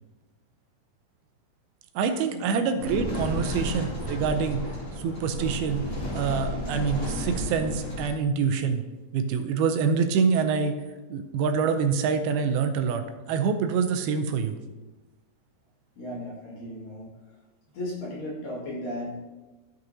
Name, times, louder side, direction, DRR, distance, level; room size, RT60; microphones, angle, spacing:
voice 1, 2.0-4.6 5.0-5.8 6.1-8.9 9.1-10.7 11.1-14.6, right 6 dB, 85° right, 7 dB, 2.5 m, -26 dB
sound 1, 2.8-8.1, equal, 20° left, 1.6 m, -32 dB
voice 2, 16.0-17.1 17.7-19.2, left 1 dB, 60° left, -6 dB, 3.5 m, -35 dB
13.5 x 5.3 x 2.7 m, 1.2 s
omnidirectional pair, 4.4 m